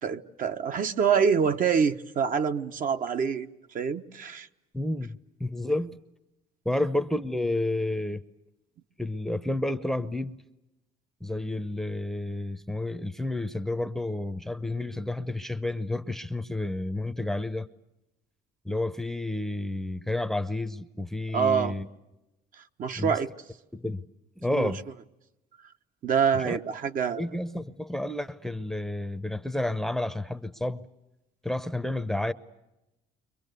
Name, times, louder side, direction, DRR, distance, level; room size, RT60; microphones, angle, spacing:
voice 1, 0.0-4.5 21.3-21.7 22.8-23.3 24.5-24.7 26.0-27.3, right 6 dB, 55° right, 1.2 m, -26 dB
voice 2, 4.7-6.0 6.6-8.2 9.0-10.4 11.2-17.7 18.6-21.9 23.0-23.2 23.7-24.1 24.4-24.8 26.3-26.6 27.2-30.9 31.4-32.3, left 1 dB, ahead, 0.8 m, -30 dB
30.0 x 24.5 x 6.8 m
cardioid pair, 110°, 17 cm